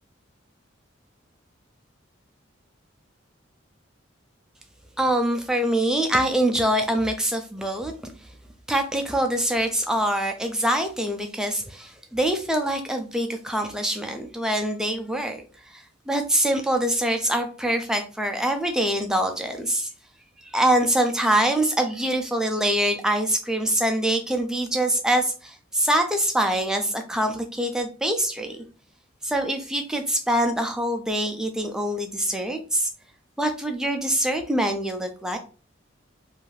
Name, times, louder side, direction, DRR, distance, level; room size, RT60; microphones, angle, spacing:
voice 1, 5.0-8.1 8.7-15.4 15.7-19.9 20.4-28.6 29.2-32.9 33.4-35.4, right 1 dB, 5° right, 5 dB, 0.3 m, -24 dB
2.6 x 2.4 x 3.1 m, 0.37 s
head